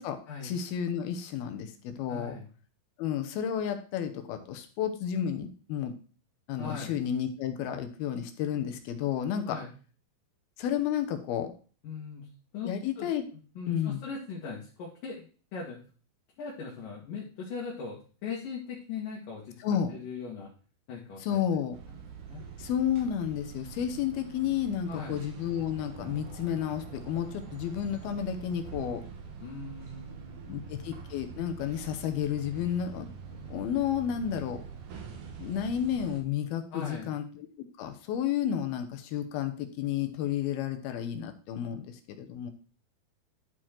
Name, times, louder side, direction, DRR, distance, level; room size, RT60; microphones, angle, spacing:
voice 1, 0.4-2.3 3.0-5.9 6.5-9.6 10.6-11.5 12.6-13.2 13.7-14.0 19.6-19.9 21.2-21.8 22.6-29.0 30.5-33.1 33.5-34.6 35.4-37.5 37.8-42.5, left 9 dB, 80° left, 7 dB, 2.8 m, -31 dB
voice 2, 2.1-2.5 6.6-7.0 9.4-9.7 11.8-12.3 12.5-13.1 13.3-15.8 16.4-19.6 19.9-20.5 20.9-21.4 22.3-22.4 24.9-25.2 29.4-30.7 36.7-37.1, left 5 dB, 65° left, -4 dB, 3.3 m, -40 dB
sound 1, 21.7-36.2, right 6 dB, 60° right, 2.6 m, -44 dB
11.5 x 4.6 x 4.4 m, 0.38 s
omnidirectional pair, 4.5 m